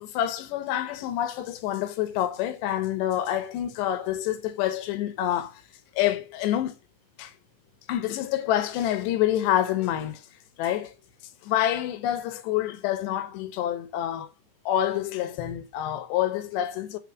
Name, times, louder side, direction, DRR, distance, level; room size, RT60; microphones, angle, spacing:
voice 1, 0.0-5.6 6.0-6.7 7.2-7.3 7.9-10.2 10.6-10.9 11.4-14.3 14.7-17.0, left 12 dB, 75° left, 2.7 m, -27 dB
8.2 x 4.0 x 6.1 m
omnidirectional pair, 5.9 m